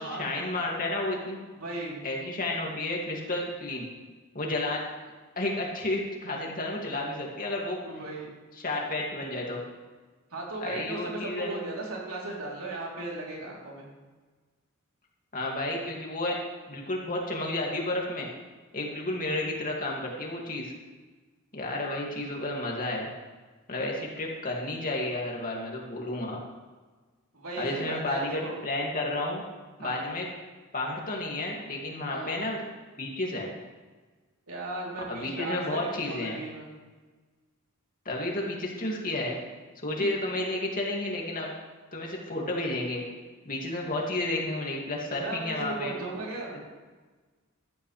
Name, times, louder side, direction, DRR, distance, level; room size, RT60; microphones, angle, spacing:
voice 1, 0.0-1.4 2.0-3.9 4.3-4.8 5.4-7.8 8.6-9.6 10.6-11.6 15.3-16.4 16.7-18.3 18.7-20.7 21.5-23.1 23.7-26.4 27.6-29.4 29.8-30.3 30.7-32.6 33.0-33.5 35.1-36.4 38.1-39.4 39.8-41.5 41.9-43.0 43.4-45.9, left 2 dB, 40° left, -2 dB, 2.4 m, -31 dB
voice 2, 1.6-2.0 7.8-8.3 10.3-13.9 18.9-19.4 27.3-28.6 29.8-30.0 32.1-32.4 34.5-36.7 40.0-40.1 45.1-46.6, right 2 dB, 80° right, -4 dB, 3.6 m, -37 dB
15.5 x 11.5 x 3.4 m, 1.3 s
head